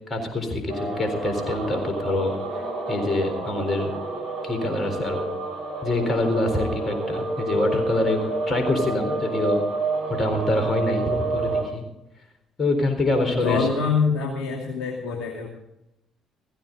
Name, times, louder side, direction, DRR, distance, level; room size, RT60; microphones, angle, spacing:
voice 1, 0.1-2.3 2.9-4.0 4.4-5.2 5.8-9.6 10.1-11.8 12.6-13.7, left 2 dB, 35° left, 5 dB, 4.1 m, -25 dB
sound 1, 0.7-11.6, right 2 dB, 75° right, 6.1 m, -29 dB
voice 2, 13.2-15.5, left 5 dB, 60° left, -1 dB, 2.4 m, -25 dB
16.0 x 16.0 x 3.9 m, 0.86 s
figure-of-eight pair, 45°, 0 cm